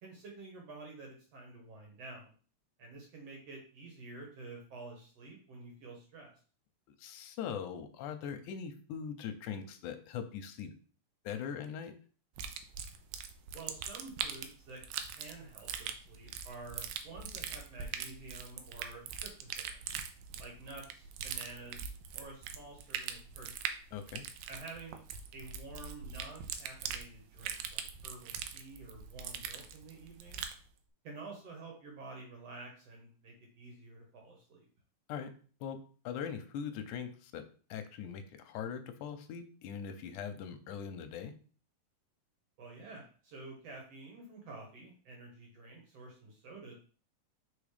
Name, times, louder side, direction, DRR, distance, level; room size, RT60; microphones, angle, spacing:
voice 1, 0.0-2.3 2.8-6.3 13.5-14.8 15.1-19.8 20.4-23.5 24.5-25.0 25.3-30.4 31.0-34.7 42.6-46.7, right 3 dB, 55° right, 0 dB, 2.2 m, -49 dB
voice 2, 7.0-10.7 11.2-11.9 23.9-24.2 35.1-35.3 35.6-37.4 37.7-41.3, left 7 dB, 75° left, 8 dB, 2.0 m, -41 dB
sound 1, 12.4-30.6, right 8 dB, 90° right, 2.3 m, -42 dB
5.2 x 4.1 x 5.0 m, 0.40 s
omnidirectional pair, 3.9 m